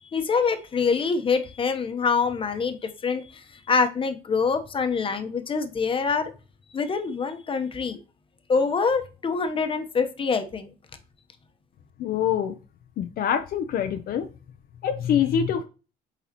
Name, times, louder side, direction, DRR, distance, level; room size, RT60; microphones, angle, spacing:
voice 1, 0.1-6.3 6.7-8.0 8.5-10.7, left 5 dB, 30° left, 7 dB, 0.9 m, -25 dB
voice 2, 12.0-12.6 13.0-14.2 14.8-15.6, left 8 dB, 60° left, 7 dB, 0.6 m, -25 dB
8.2 x 4.0 x 2.9 m, 0.34 s
cardioid pair, 110°, 17 cm